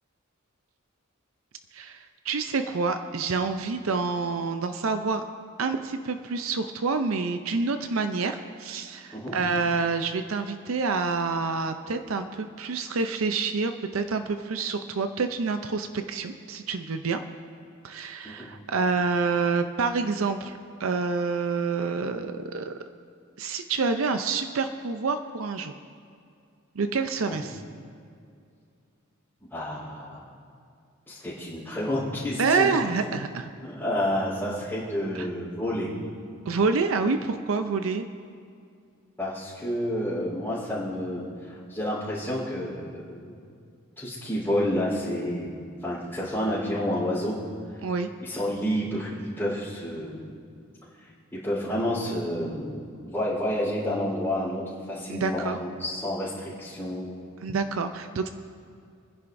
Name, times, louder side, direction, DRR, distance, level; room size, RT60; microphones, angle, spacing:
voice 1, 1.7-5.2 5.6-17.2 17.8-22.8 23.4-25.7 26.8-27.6 32.4-33.5 35.1-35.3 36.5-38.0 47.8-48.1 55.1-55.6 57.4-58.3, right 4 dB, 70° right, 8 dB, 0.5 m, -27 dB
voice 2, 29.5-30.2 31.1-32.8 33.6-35.9 39.2-43.4 44.0-45.5 45.8-47.4 48.2-50.3 51.3-57.2, equal, 10° left, -11 dB, 3.7 m, -30 dB
27.5 x 10.5 x 2.6 m, 2.3 s
head